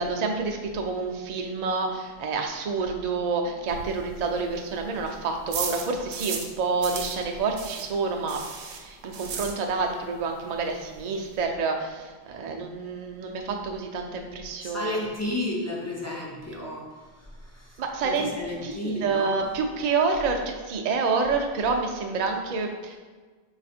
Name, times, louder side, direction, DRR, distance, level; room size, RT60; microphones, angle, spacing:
voice 1, 0.0-8.4 8.7-15.0 17.8-18.3 18.6-23.0, right 4 dB, 55° right, 3 dB, 0.4 m, -28 dB
sound 1, 3.7-6.6 6.8-10.0 10.3-10.4 10.7-10.8 11.0-11.5, right 5 dB, 85° right, 0.8 m, -36 dB
voice 2, 14.6-16.9 17.1-19.5, left 1 dB, 25° left, -4 dB, 0.3 m, -33 dB
4.1 x 2.4 x 4.1 m, 1.4 s
omnidirectional pair, 1.1 m